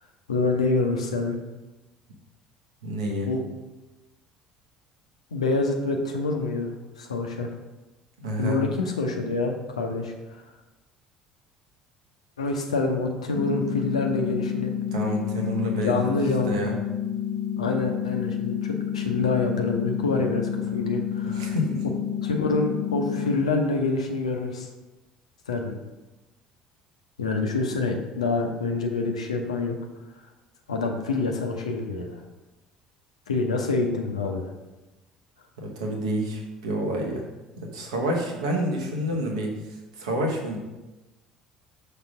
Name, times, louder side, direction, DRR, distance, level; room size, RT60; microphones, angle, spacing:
voice 1, 0.3-1.4 3.2-3.4 5.3-6.7 7.0-7.5 8.4-10.4 12.4-14.7 15.8-16.6 17.6-21.6 22.2-24.7 25.5-25.8 27.2-29.8 30.7-32.2 33.3-34.5, left 3 dB, 80° left, 3 dB, 0.7 m, -26 dB
voice 2, 2.8-3.3 8.2-8.6 14.9-16.1 16.5-16.8 21.2-21.8 35.6-37.2 37.6-39.5 40.0-40.6, right 1 dB, 70° right, 0 dB, 1.1 m, -28 dB
sound 1, 13.3-23.4, left 9 dB, 45° left, 0.5 m, -29 dB
6.0 x 3.4 x 5.8 m, 1.1 s
figure-of-eight pair, 60°, 3 cm